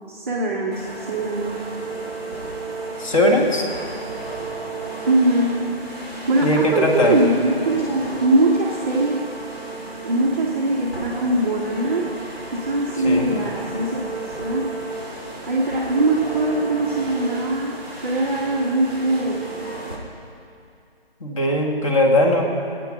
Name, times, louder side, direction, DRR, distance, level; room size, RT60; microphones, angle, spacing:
voice 1, 0.1-1.6 5.0-5.6 6.3-9.3 10.0-12.1 12.5-14.0 14.4-14.7 15.4-19.5, right 2 dB, 15° right, -6 dB, 0.7 m, -21 dB
sound 1, 0.7-20.0, right 3 dB, 90° left, 3.5 m, -33 dB
voice 2, 3.0-3.7 6.4-7.2 13.0-13.4 21.2-22.4, left 1 dB, 35° left, 1 dB, 1.8 m, -19 dB
21.0 x 9.0 x 5.2 m, 2.5 s
figure-of-eight pair, 150°, 30 cm